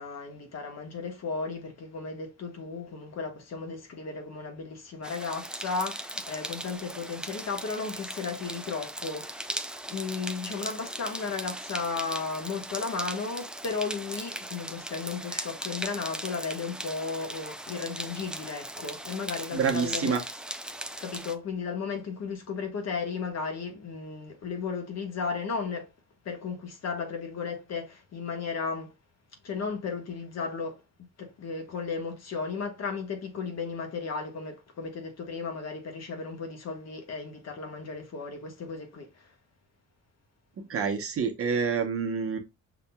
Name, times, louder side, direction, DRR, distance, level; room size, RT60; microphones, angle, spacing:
voice 1, 0.0-9.5 9.9-20.2 21.0-25.9 26.2-28.9 29.4-30.8 31.2-39.3, left 5 dB, 60° left, 1.3 m, -35 dB
sound 1, 5.0-21.3, right 1 dB, 5° right, 0.4 m, -38 dB
voice 2, 19.5-20.2 40.7-42.4, right 6 dB, 50° right, 0.9 m, -27 dB
6.0 x 2.8 x 2.2 m
cardioid pair, 90°, 30 cm